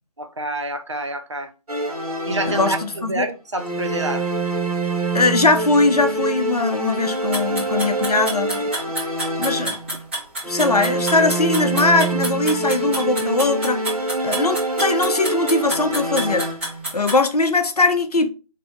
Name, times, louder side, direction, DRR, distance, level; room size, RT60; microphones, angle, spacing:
voice 1, 0.2-1.5 2.3-2.8 3.1-4.3, right 2 dB, 50° right, 0.5 m, -27 dB
sound 1, 1.7-3.2 3.6-10.0 10.4-16.9, right 2 dB, 70° right, 1.0 m, -25 dB
voice 2, 2.5-3.3 5.1-8.7 9.4-9.7 10.5-13.8 14.2-16.5 16.9-18.3, left 3 dB, 75° left, 0.7 m, -20 dB
sound 2, 7.1-17.2, right 1 dB, 20° right, 1.0 m, -28 dB
2.7 x 2.5 x 3.6 m
figure-of-eight pair, 165°, 20 cm